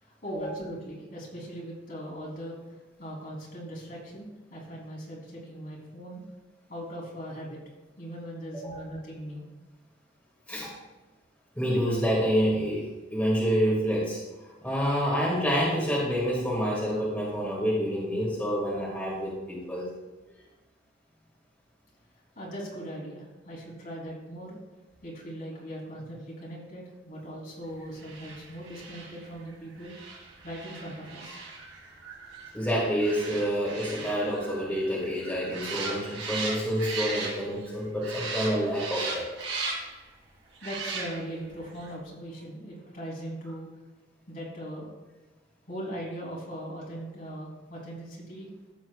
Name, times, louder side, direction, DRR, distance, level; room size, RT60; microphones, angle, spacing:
voice 1, 0.0-6.2 6.7-7.6 8.0-9.5 22.3-24.6 25.0-29.9 30.4-31.4 40.6-43.7 44.3-44.9 45.7-48.5, equal, 50° left, -4 dB, 3.3 m, -40 dB
voice 2, 11.6-14.2 14.6-19.9 32.5-39.3, equal, 10° left, -6 dB, 2.0 m, -28 dB
sound 1, 28.0-37.7 38.0-40.0 40.6-41.4 41.8-41.9, right 4 dB, 70° right, 3.1 m, -38 dB
14.5 x 7.5 x 2.4 m, 1.1 s
head